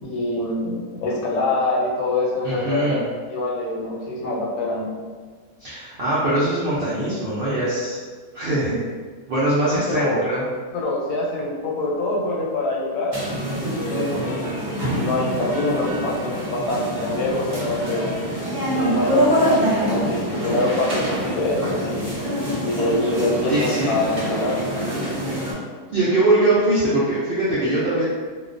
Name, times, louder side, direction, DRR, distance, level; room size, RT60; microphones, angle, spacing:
voice 1, 0.0-3.0 3.3-4.9 9.9-10.2 10.7-13.2 13.9-14.6 15.0-18.1 18.7-22.1 22.6-24.6, left 2 dB, 85° left, -3 dB, 1.1 m, -25 dB
voice 2, 2.4-3.0 5.6-8.0 8.3-8.8 9.3-10.4 23.5-23.9 25.9-28.0, right 1 dB, 80° right, -9 dB, 0.5 m, -21 dB
sound 1, 13.1-25.5, equal, 50° right, 0.8 m, -25 dB
2.3 x 2.2 x 2.4 m, 1.5 s
omnidirectional pair, 1.5 m